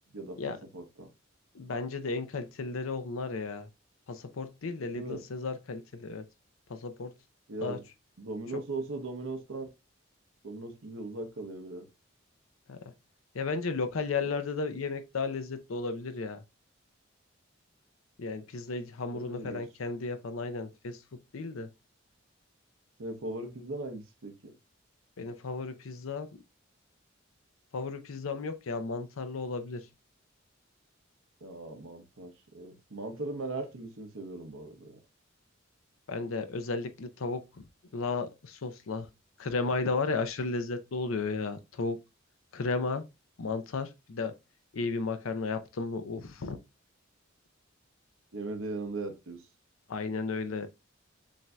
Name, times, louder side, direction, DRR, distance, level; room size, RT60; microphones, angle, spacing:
voice 1, 0.7-1.1 4.9-5.2 7.5-7.8 8.2-9.7 10.4-11.9 19.1-19.6 23.0-24.6 31.4-35.0 48.3-49.4, right 2 dB, 80° right, 0.8 m, -38 dB
voice 2, 1.5-3.7 4.1-6.3 6.7-7.1 7.6-7.8 8.5-8.6 12.7-12.9 13.3-16.4 18.2-21.7 25.2-26.4 27.7-29.9 36.1-37.6 37.9-39.1 39.4-42.0 42.5-43.0 43.4-44.4 44.7-46.6 49.9-50.7, left 4 dB, 85° left, 0.6 m, -34 dB
7.2 x 2.6 x 2.2 m
head